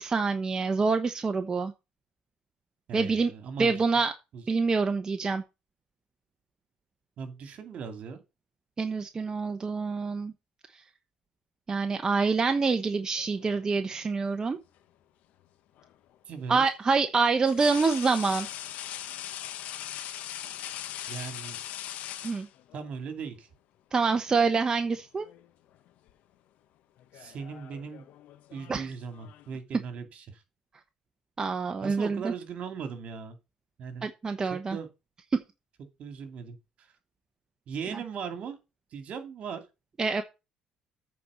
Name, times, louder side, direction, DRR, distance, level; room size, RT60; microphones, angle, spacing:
voice 1, 0.0-1.7 2.9-3.3 3.6-4.1 4.5-5.4 8.8-10.3 11.7-14.6 16.5-18.5 22.2-22.5 23.9-25.3 28.7-28.9 31.4-32.3 34.0-34.8 35.3-35.4 40.0-40.2, right 4 dB, 30° right, 1.0 m, -26 dB
voice 2, 2.9-3.9 4.3-4.4 7.2-8.2 16.3-16.6 21.1-21.6 22.7-23.5 27.1-28.1 28.5-30.4 31.8-33.4 33.8-34.1 34.4-34.9 36.0-36.9 37.7-38.6 38.9-39.6, right 6 dB, 55° right, 2.4 m, -38 dB
sound 1, 13.2-14.0 15.8-15.9 17.5-22.9 24.1-24.3 24.7-25.5 25.7-26.1 27.0-29.6, left 12 dB, 70° left, 1.0 m, -41 dB
8.5 x 4.5 x 6.8 m
cardioid pair, 95°, 3 cm